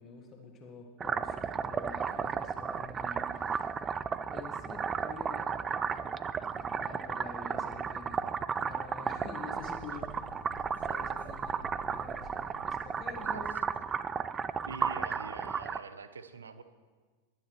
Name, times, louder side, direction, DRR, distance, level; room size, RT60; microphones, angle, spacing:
voice 1, 0.0-3.7 4.3-8.3 8.5-10.2 10.8-13.5, left 4 dB, 30° left, 2 dB, 1.6 m, -48 dB
sound 1, 1.0-15.8, right 6 dB, 20° right, 0.4 m, -34 dB
sound 2, 9.6-13.9, left 2 dB, 70° left, 1.2 m, -52 dB
voice 2, 14.7-16.6, right 5 dB, 70° right, 12 dB, 0.7 m, -44 dB
21.0 x 9.6 x 3.1 m, 1.4 s
figure-of-eight pair, 90°, 0 cm